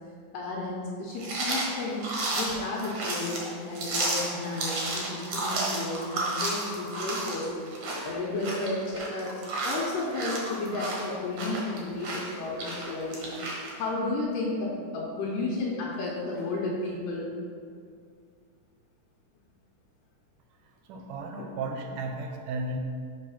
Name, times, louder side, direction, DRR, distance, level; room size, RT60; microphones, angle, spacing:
voice 1, 0.3-7.5 8.0-9.3 9.6-13.3 13.7-17.3 21.4-21.5, left 2 dB, 85° left, -5 dB, 2.5 m, -32 dB
sound 1, 1.2-13.7, right 2 dB, 55° right, 1.6 m, -32 dB
voice 2, 20.8-22.8, right 2 dB, 85° right, 3 dB, 2.2 m, -34 dB
6.2 x 4.6 x 5.7 m, 2.2 s
omnidirectional pair, 3.7 m